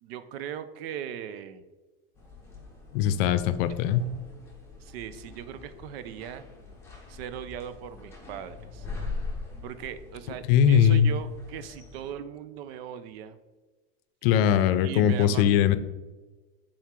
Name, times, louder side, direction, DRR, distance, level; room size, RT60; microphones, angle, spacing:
voice 1, 0.0-1.6 4.8-6.5 7.1-8.9 9.6-13.4 14.8-15.5, right 9 dB, 70° right, 12 dB, 0.7 m, -39 dB
sound 1, 2.1-12.1, left 3 dB, 10° left, 1.6 m, -42 dB
voice 2, 2.9-4.1 10.5-11.1 14.2-15.8, left 9 dB, 65° left, 12 dB, 0.6 m, -21 dB
7.4 x 4.5 x 3.7 m, 1.2 s
supercardioid pair, 130°, 31 cm